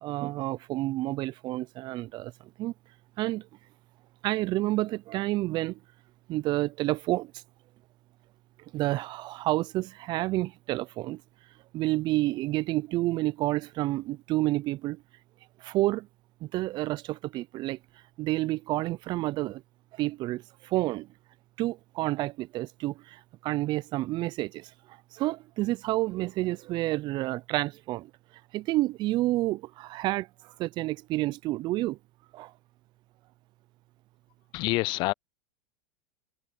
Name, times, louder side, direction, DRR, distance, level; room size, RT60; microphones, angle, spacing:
voice 1, 0.0-2.3 2.6-2.7 3.2-3.4 4.2-5.8 6.3-7.3 8.7-11.2 11.7-15.0 15.6-16.1 16.4-17.8 18.2-19.6 19.9-21.1 21.6-24.7 25.1-28.1 28.5-32.0 32.3-32.5, right 18 dB, 40° right, 0.6 m, -29 dB
voice 2, 34.5-35.1, left 22 dB, 45° left, 0.5 m, -26 dB
hypercardioid pair, 100°, 11 cm